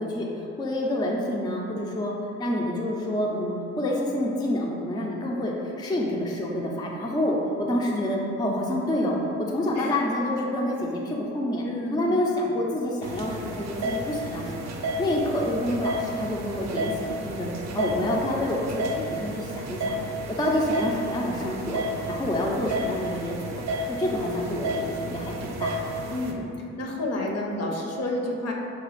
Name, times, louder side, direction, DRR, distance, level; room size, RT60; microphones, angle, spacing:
voice 1, 0.0-2.1 2.4-11.6 11.9-14.7 15.0-20.1 20.4-23.6 23.9-25.8, left 1 dB, 15° left, -2 dB, 0.4 m, -28 dB
voice 2, 11.6-12.2 26.1-26.4 26.8-28.5, left 1 dB, 55° left, 0 dB, 0.7 m, -30 dB
sound 1, 13.0-26.3, right 1 dB, 60° right, 0.5 m, -32 dB
4.9 x 2.3 x 3.1 m, 2.7 s
cardioid pair, 90°, 30 cm